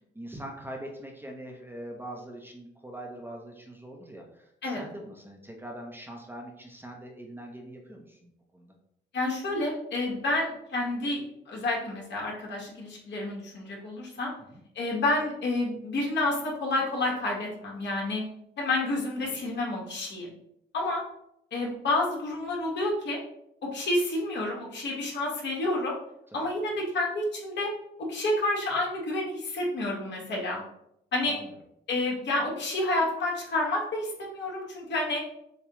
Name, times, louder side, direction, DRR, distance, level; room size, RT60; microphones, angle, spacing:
voice 1, 0.0-8.7 14.4-14.6 19.2-19.3 26.3-26.4 31.2-31.5, right 1 dB, 10° right, 1 dB, 0.8 m, -43 dB
voice 2, 9.1-14.3 14.8-18.2 18.6-20.3 20.7-21.0 21.5-23.2 23.6-25.9 26.3-27.7 28.0-30.6 31.1-31.4 31.9-35.2, left 2 dB, 60° left, -3 dB, 1.7 m, -29 dB
6.9 x 2.3 x 3.1 m, 0.77 s
cardioid pair, 90°, 20 cm